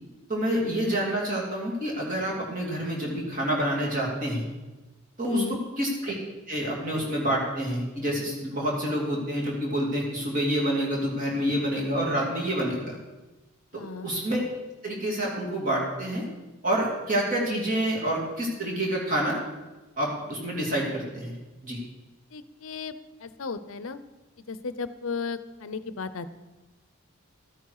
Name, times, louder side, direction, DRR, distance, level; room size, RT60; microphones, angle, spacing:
voice 1, 0.3-4.4 5.2-5.4 5.8-6.1 6.5-13.0 13.7-14.4 14.8-16.2 16.6-19.4 20.0-21.4 21.6-21.8, right 1 dB, 40° right, -3 dB, 2.8 m, -28 dB
voice 2, 5.3-5.6 13.7-14.1 22.3-22.9 23.2-24.0 24.5-26.3, left 4 dB, 70° left, 13 dB, 0.7 m, -35 dB
13.0 x 9.3 x 4.8 m, 1.1 s
head